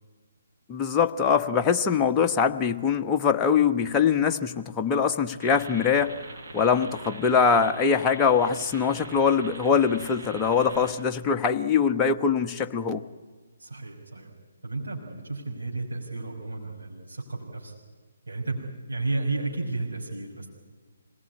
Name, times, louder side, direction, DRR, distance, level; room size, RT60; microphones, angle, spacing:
voice 1, 0.7-6.2 6.5-13.0, left 6 dB, 15° left, 4 dB, 1.1 m, -23 dB
sound 1, 5.4-10.9, right 3 dB, 45° right, 6.0 m, -42 dB
voice 2, 13.6-14.3 14.6-17.7 18.3-20.5, right 3 dB, 70° right, -2 dB, 5.3 m, -32 dB
26.5 x 18.5 x 9.7 m, 1.4 s
figure-of-eight pair, 140°, 0 cm